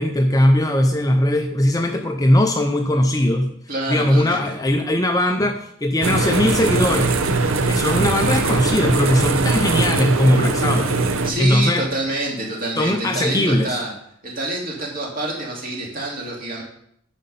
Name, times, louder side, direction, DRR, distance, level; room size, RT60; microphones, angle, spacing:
voice 1, 0.0-3.5 3.9-7.1 7.7-10.9 11.4-11.9 12.8-13.8, left 1 dB, 15° left, 5 dB, 0.5 m, -19 dB
voice 2, 3.7-4.4 11.2-13.9 14.2-16.6, right 1 dB, 40° right, -2 dB, 2.4 m, -27 dB
sound 1, 6.0-11.3, right 3 dB, 65° right, 0.7 m, -20 dB
9.6 x 5.2 x 5.3 m, 0.69 s
head